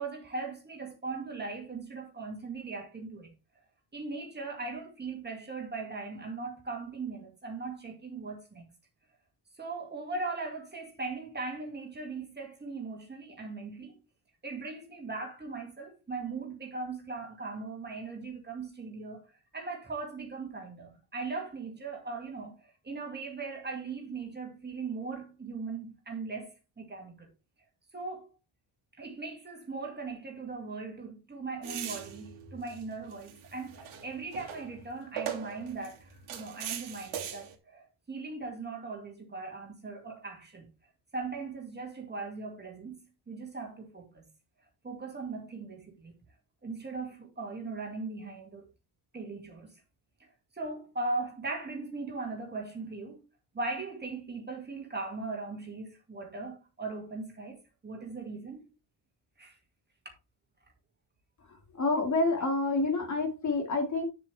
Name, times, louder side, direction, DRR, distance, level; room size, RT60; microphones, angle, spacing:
voice 1, 0.0-3.3 3.9-8.7 9.6-14.0 14.4-27.3 27.9-28.3 28.9-40.7 41.1-44.3 44.8-46.2 46.6-48.6 49.1-49.8 50.2-53.3 53.5-58.7 59.4-59.6 60.0-60.1, right 3 dB, 20° right, 2.4 m, -39 dB
sound 1, 31.6-37.5, right 8 dB, 75° right, 2.9 m, -41 dB
voice 2, 61.5-64.0, left 3 dB, 35° left, 2.3 m, -28 dB
9.5 x 7.4 x 3.4 m
cardioid pair, 160°, 49 cm